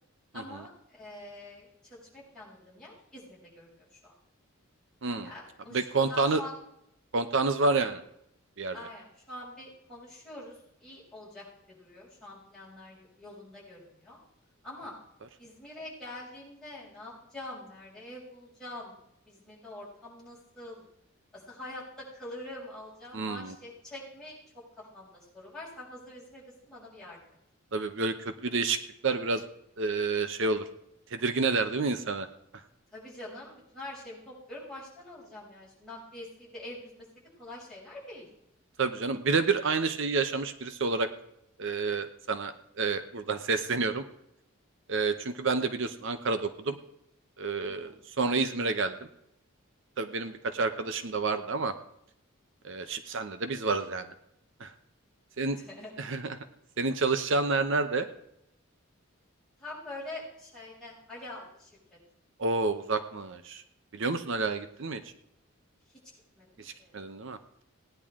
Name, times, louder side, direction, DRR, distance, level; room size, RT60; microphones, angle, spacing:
voice 1, 0.3-4.1 5.2-6.6 8.7-14.2 14.6-14.9 15.4-18.9 19.2-20.8 21.3-27.2 32.9-37.1 37.4-38.3 47.6-48.0 50.3-50.4 55.5-56.1 59.6-62.0 65.9-66.0 66.3-66.9, left 1 dB, 5° left, -9 dB, 6.5 m, -45 dB
voice 2, 5.0-5.3 5.7-6.4 7.1-8.0 8.6-8.7 23.1-23.5 27.7-28.8 29.0-29.4 29.8-30.7 31.1-32.3 38.8-41.1 41.6-44.0 44.9-46.8 47.4-48.9 50.0-51.7 52.6-54.1 54.6-54.7 55.4-55.6 56.0-56.4 56.8-58.1 62.4-63.6 63.9-65.0 66.6-67.4, right 3 dB, 60° right, 10 dB, 0.8 m, -29 dB
17.0 x 10.5 x 3.7 m, 0.78 s
head